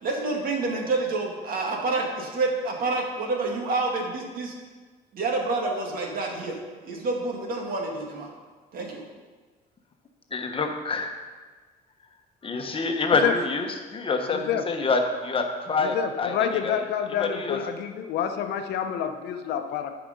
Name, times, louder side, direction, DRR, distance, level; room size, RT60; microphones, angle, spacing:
voice 1, 0.0-4.5 5.1-8.3 8.7-9.0, right 3 dB, 60° right, 0 dB, 2.1 m, -28 dB
voice 2, 10.3-11.1 12.4-16.8 17.2-17.6, left 3 dB, 30° left, 4 dB, 1.2 m, -27 dB
voice 3, 14.3-14.6 15.8-19.9, left 9 dB, 80° left, 7 dB, 0.9 m, -28 dB
12.0 x 5.0 x 5.3 m, 1.4 s
cardioid pair, 110°, 17 cm